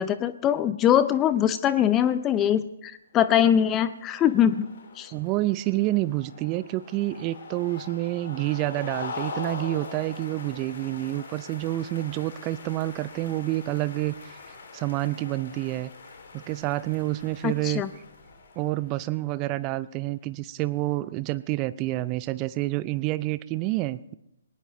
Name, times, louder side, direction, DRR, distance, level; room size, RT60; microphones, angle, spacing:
voice 1, 0.0-4.7 5.0-5.1 17.4-17.9, left 10 dB, 20° left, 13 dB, 0.6 m, -22 dB
sound 1, 3.5-19.1, left 4 dB, 55° left, 2.8 m, -42 dB
voice 2, 5.1-15.9 16.3-17.8 18.6-24.1, right 17 dB, 25° right, 17 dB, 0.5 m, -28 dB
20.5 x 19.0 x 3.1 m, 0.82 s
figure-of-eight pair, 125°, 0 cm